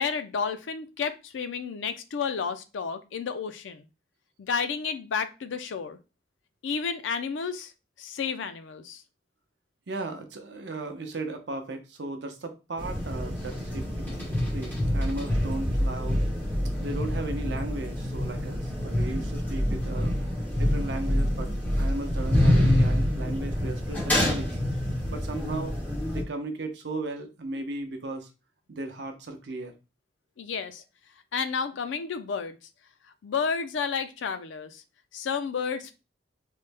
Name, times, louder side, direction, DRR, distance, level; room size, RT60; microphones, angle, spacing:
voice 1, 0.0-3.9 4.4-6.0 6.6-7.7 8.0-9.0 30.4-30.8 31.3-32.6 33.2-34.8 35.1-35.9, left 6 dB, 85° left, 0.4 m, -31 dB
voice 2, 9.9-16.2 16.8-21.5 21.8-24.6 25.1-25.8 26.1-28.3 28.7-29.7, right 2 dB, 70° right, 0.6 m, -36 dB
sound 1, 12.8-26.2, left 1 dB, 10° left, 0.9 m, -26 dB
3.1 x 2.0 x 3.3 m
head